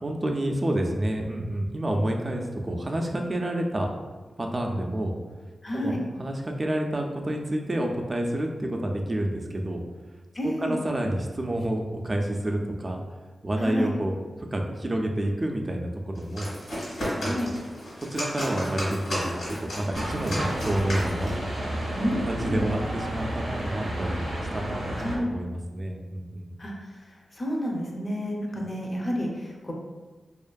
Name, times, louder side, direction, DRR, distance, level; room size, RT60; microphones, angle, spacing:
voice 1, 0.0-3.9 4.4-5.1 5.7-5.9 6.2-9.8 10.4-13.0 13.4-16.5 17.2-17.5 18.0-19.3 19.6-21.3 22.3-24.2 24.5-24.8 25.2-26.5, right 1 dB, 35° right, 2 dB, 0.3 m, -29 dB
voice 2, 5.6-6.0 10.3-10.8 13.6-13.9 17.2-17.5 21.9-22.6 25.0-25.4 26.6-29.7, equal, 40° left, -1 dB, 0.5 m, -30 dB
sound 1, 16.1-21.4, equal, 80° left, 1.1 m, -33 dB
sound 2, 19.9-25.2, right 1 dB, 85° right, 0.5 m, -31 dB
2.5 x 2.4 x 2.2 m, 1.3 s
cardioid pair, 50°, 0 cm